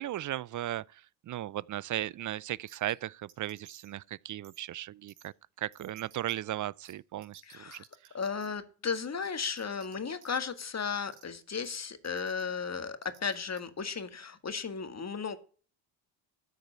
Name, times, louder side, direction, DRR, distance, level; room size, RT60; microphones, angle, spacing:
voice 1, 0.0-5.3 5.6-7.8, right 13 dB, 40° right, 0.5 m, -36 dB
sound 1, 2.7-2.9 3.3-3.9 4.4-4.6 5.1-5.3 5.7-6.3 6.8-6.9 7.2-8.5 8.9-9.9 10.2-10.3 11.1-11.2 11.6-11.8 12.0-12.4 13.0-13.6, right 9 dB, 85° right, 3.0 m, -56 dB
voice 2, 7.4-7.8 8.1-15.4, left 5 dB, 30° left, 1.9 m, -35 dB
13.5 x 4.9 x 8.1 m
supercardioid pair, 65°, 49 cm